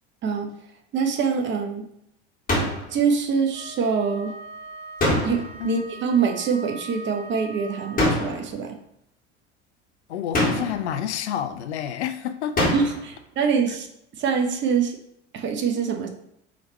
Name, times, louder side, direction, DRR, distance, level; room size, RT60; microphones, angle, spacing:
voice 1, 0.2-0.5 0.9-1.9 2.9-4.3 5.2-8.8 12.7-13.9 14.2-15.0 15.3-16.1, right 6 dB, 30° right, 0.7 m, -24 dB
sound 1, 2.5-2.9 5.0-5.6 8.0-8.5 10.3-10.9 12.6-13.1, left 1 dB, 25° left, 1.7 m, -24 dB
Wind instrument woodwind instrument, 3.5-8.4, right 3 dB, 85° right, 1.3 m, -41 dB
voice 2, 10.1-12.7, left 9 dB, 70° left, 0.5 m, -29 dB
5.0 x 3.2 x 3.0 m
figure-of-eight pair, 65°, 35 cm